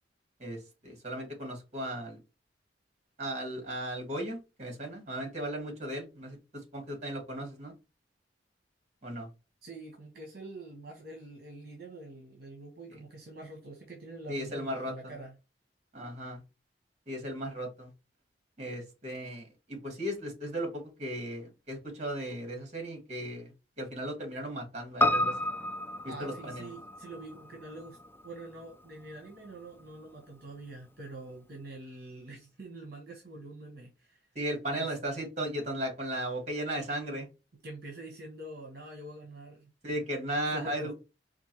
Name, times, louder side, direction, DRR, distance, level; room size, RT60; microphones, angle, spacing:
voice 1, 0.4-2.2 3.2-6.4 6.7-7.7 9.0-9.3 14.3-15.1 15.9-16.4 17.1-17.9 18.6-25.3 26.0-26.7 34.3-37.3 39.8-40.9, right 1 dB, 40° right, 1.6 m, -36 dB
voice 2, 9.6-15.3 26.1-28.0 28.2-34.2 34.7-34.9 37.6-39.7 40.5-40.9, right 2 dB, 55° right, 1.1 m, -45 dB
Piano, 25.0-29.5 29.8-29.9, left 1 dB, 10° left, 0.3 m, -32 dB
4.4 x 2.6 x 3.0 m
head